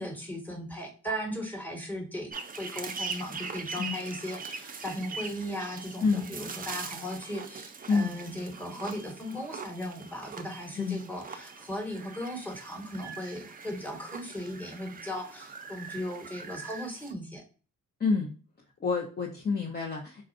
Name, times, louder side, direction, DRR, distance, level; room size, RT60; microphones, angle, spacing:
voice 1, 0.0-17.4, equal, 5° left, 1 dB, 1.3 m, -37 dB
sound 1, 2.3-17.1, right 5 dB, 25° right, 0.5 m, -42 dB
voice 2, 18.0-18.3 18.8-20.3, left 4 dB, 30° left, -1 dB, 0.7 m, -28 dB
4.2 x 2.4 x 2.5 m, 0.37 s
supercardioid pair, 60°, 34 cm